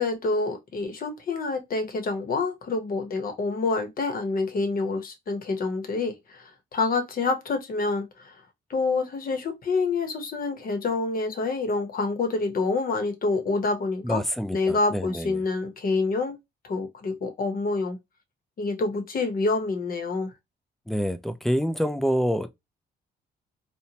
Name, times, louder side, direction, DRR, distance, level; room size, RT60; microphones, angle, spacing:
voice 1, 0.0-8.4 8.7-14.2 14.5-16.4 16.6-18.0 18.6-20.3, left 3 dB, 45° left, 0.8 m, -27 dB
voice 2, 14.0-15.4 20.9-22.5, equal, ahead, 0.3 m, -27 dB
2.9 x 2.1 x 2.7 m
cardioid pair, 90°, 20 cm